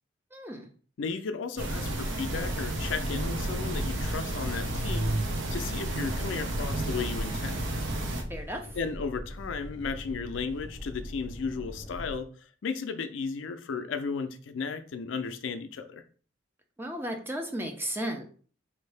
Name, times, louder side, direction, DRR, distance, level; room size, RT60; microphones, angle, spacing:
voice 1, 0.3-0.7 8.3-8.6 16.8-18.3, right 1 dB, 10° right, 4 dB, 0.5 m, -34 dB
voice 2, 1.0-5.2 5.5-7.6 8.7-12.3 12.6-16.0, left 5 dB, 75° left, 9 dB, 0.4 m, -34 dB
sound 1, 1.6-8.2, right 1 dB, 70° right, 0.7 m, -31 dB
sound 2, 2.4-12.2, left 1 dB, 20° left, 0.7 m, -42 dB
4.5 x 2.7 x 3.3 m, 0.42 s
head